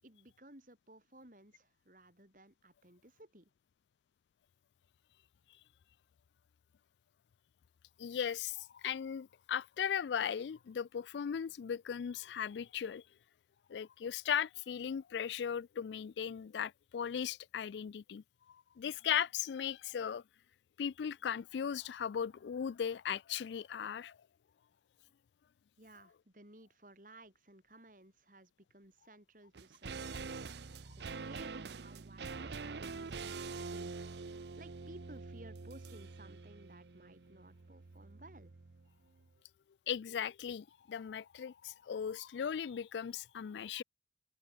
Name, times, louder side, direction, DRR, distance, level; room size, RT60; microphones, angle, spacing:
voice 1, 0.0-3.5 25.8-30.3 31.0-34.0 34.3-38.5, right 1 dB, 50° right, 4.8 m, -58 dB
voice 2, 8.0-13.0 13.7-18.2 18.8-20.2 20.8-24.2 39.9-43.8, left 8 dB, 80° left, 0.4 m, -37 dB
sound 1, 29.5-38.9 39.2-39.3, right 4 dB, 75° right, 0.7 m, -45 dB
head